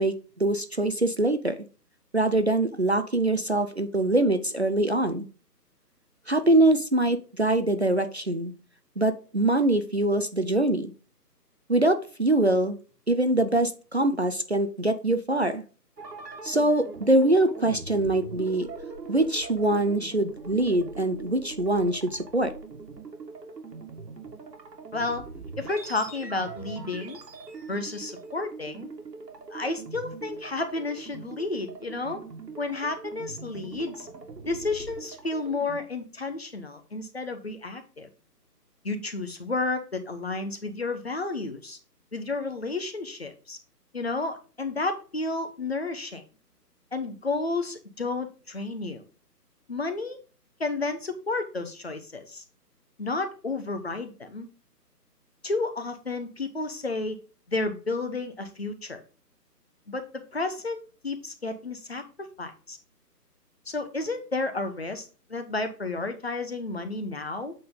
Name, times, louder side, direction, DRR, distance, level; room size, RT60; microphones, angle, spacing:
voice 1, 0.0-1.6 2.1-5.3 6.3-8.5 9.0-10.9 11.7-12.8 13.1-15.6 16.4-18.7 19.1-22.5, right 1 dB, 45° right, 9 dB, 0.5 m, -23 dB
sound 1, 16.0-35.8, right 4 dB, 80° right, 1.9 m, -42 dB
voice 2, 24.9-25.2 25.6-27.2 27.7-28.9 29.5-32.2 32.6-34.1 34.4-38.1 38.8-41.8 42.1-43.6 43.9-46.2 46.9-49.0 49.7-50.2 50.6-52.4 53.0-54.5 55.4-57.2 57.5-59.0 59.9-62.8 63.7-67.5, left 3 dB, 40° left, 7 dB, 0.9 m, -31 dB
8.5 x 3.9 x 3.7 m, 0.36 s
figure-of-eight pair, 170°, 49 cm